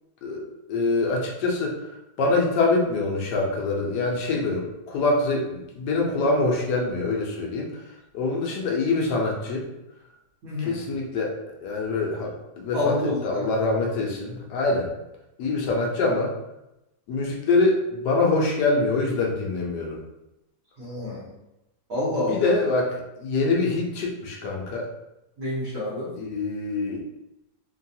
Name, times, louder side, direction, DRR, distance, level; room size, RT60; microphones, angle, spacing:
voice 1, 0.7-7.7 8.1-9.6 10.6-11.3 11.6-13.0 13.2-14.9 15.4-16.3 17.1-20.0 22.3-22.9 23.2-24.9 26.2-27.0, left 3 dB, 75° left, -1 dB, 1.2 m, -24 dB
voice 2, 10.4-10.8 12.7-13.5 20.8-21.3 21.9-22.5 25.4-26.1, left 1 dB, 60° right, -8 dB, 1.2 m, -28 dB
3.2 x 2.2 x 2.6 m, 0.91 s
omnidirectional pair, 1.9 m